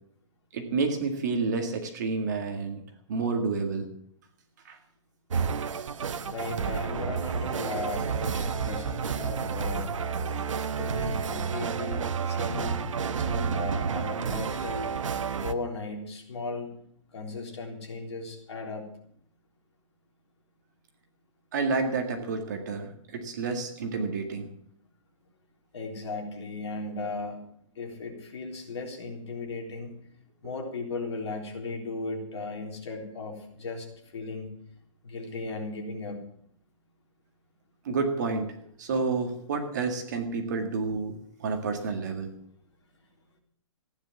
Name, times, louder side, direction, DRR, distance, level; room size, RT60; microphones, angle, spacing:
voice 1, 0.5-2.8 3.1-3.9 4.7-4.8 21.5-24.5 37.9-38.5 38.8-41.1 41.4-42.3, right 4 dB, 35° right, 4 dB, 2.0 m, -29 dB
sound 1, 5.3-15.5, right 6 dB, 70° right, 1.1 m, -30 dB
voice 2, 6.3-10.0 10.8-12.8 13.2-15.0 15.4-16.7 17.1-18.9 25.7-27.5 27.8-30.0 30.4-33.9 34.1-34.5 35.0-36.2, left 3 dB, 55° left, 2 dB, 3.8 m, -36 dB
15.5 x 10.0 x 7.7 m, 0.66 s
hypercardioid pair, 180°, 17 cm